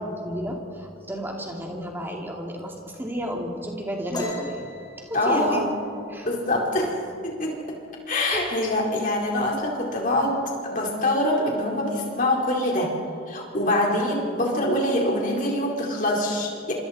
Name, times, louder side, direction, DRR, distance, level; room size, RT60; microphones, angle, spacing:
voice 1, 0.2-4.6 5.1-5.6 6.1-6.3 6.8-6.9 8.3-8.5, equal, 10° right, 0 dB, 2.8 m, -32 dB
sound 1, 4.1-7.6 7.9-8.2 8.6-9.1 9.4-10.2, equal, 20° left, 4.4 m, -38 dB
voice 2, 5.1-5.7 6.2-6.9 7.2-7.5 8.1-10.4 10.6-12.9 13.3-16.7, left 1 dB, 40° left, -2 dB, 4.3 m, -24 dB
27.0 x 26.0 x 4.3 m, 2.4 s
head